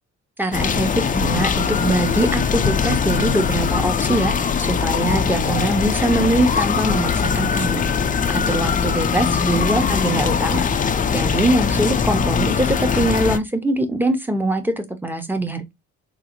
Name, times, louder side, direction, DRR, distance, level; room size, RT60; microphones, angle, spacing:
voice 1, 0.4-4.3 4.6-7.9 8.3-10.7 11.1-15.7, right 1 dB, 5° right, 0.7 m, -22 dB
sound 1, 0.5-13.4, left 6 dB, 30° left, 0.4 m, -21 dB
3.8 x 2.0 x 2.9 m
cardioid pair, 90°, 30 cm